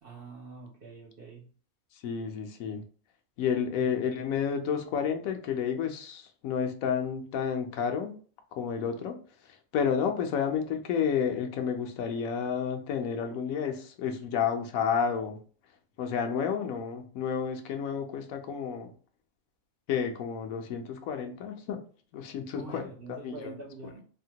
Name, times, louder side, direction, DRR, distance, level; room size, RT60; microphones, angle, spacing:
voice 1, 0.0-1.5 3.7-4.2 22.5-24.0, right 3 dB, 60° right, -1 dB, 0.6 m, -45 dB
voice 2, 2.0-2.8 3.4-8.1 8.5-9.2 9.5-15.4 16.0-18.9 19.9-21.8 22.1-22.9 23.2-23.3, left 7 dB, 75° left, 5 dB, 1.0 m, -30 dB
3.5 x 2.1 x 2.7 m, 0.42 s
omnidirectional pair, 1.5 m